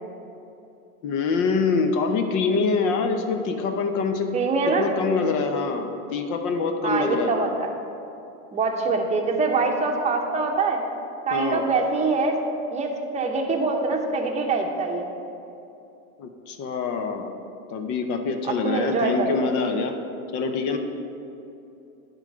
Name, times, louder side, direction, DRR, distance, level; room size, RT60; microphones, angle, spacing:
voice 1, 1.0-4.3 4.7-7.3 11.3-11.6 16.2-17.3 17.7-19.9 20.3-20.8, left 4 dB, 45° left, 6 dB, 0.8 m, -25 dB
voice 2, 4.3-4.9 6.8-7.7 8.5-10.8 11.2-12.4 12.7-15.1 18.6-19.4, right 3 dB, 15° right, 1 dB, 0.9 m, -24 dB
10.0 x 3.9 x 6.6 m, 2.8 s
hypercardioid pair, 110°, 42 cm